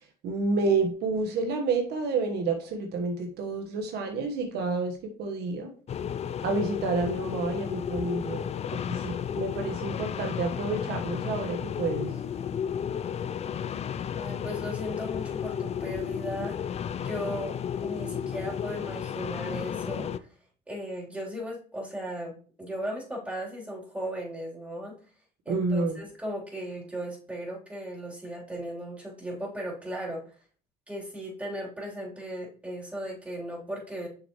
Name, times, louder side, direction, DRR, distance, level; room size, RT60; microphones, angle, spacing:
voice 1, 0.2-5.7 6.4-12.2 25.5-26.0, right 3 dB, 75° right, 4 dB, 1.4 m, -29 dB
sound 1, 5.9-20.2, left 8 dB, 40° left, 0.5 m, -33 dB
voice 2, 14.2-16.7 17.0-17.6 17.8-20.3 20.7-25.0 25.5-30.2 30.9-34.1, equal, 10° right, -4 dB, 3.5 m, -37 dB
6.7 x 6.4 x 3.1 m, 0.41 s
cardioid pair, 110°, 17 cm